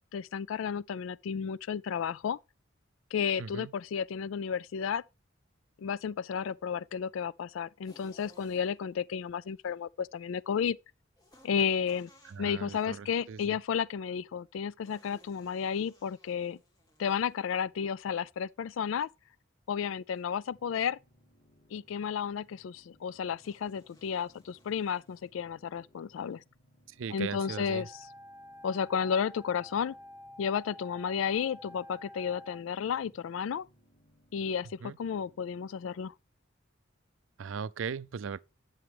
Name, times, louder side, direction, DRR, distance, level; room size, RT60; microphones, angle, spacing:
voice 1, 0.0-2.4 3.1-5.0 5.8-10.8 11.4-12.1 12.4-16.6 17.0-19.1 19.7-21.0 21.7-26.4 27.1-27.9 28.6-29.9 30.4-33.7 34.3-36.1, left 7 dB, 80° left, 0.4 m, -32 dB
voice 2, 3.4-3.7 12.2-13.6 26.9-27.9 34.8-35.0 37.4-38.4, right 6 dB, 80° right, 0.4 m, -38 dB
sound 1, 7.8-9.0 11.2-13.0 14.8-17.7 20.1-20.5 23.4-25.3, left 1 dB, 20° left, 2.9 m, -61 dB
sound 2, 20.5-35.5, equal, 40° left, 3.0 m, -66 dB
Wind instrument woodwind instrument, 27.3-32.6, left 1 dB, 15° right, 0.7 m, -50 dB
11.0 x 7.2 x 3.4 m
head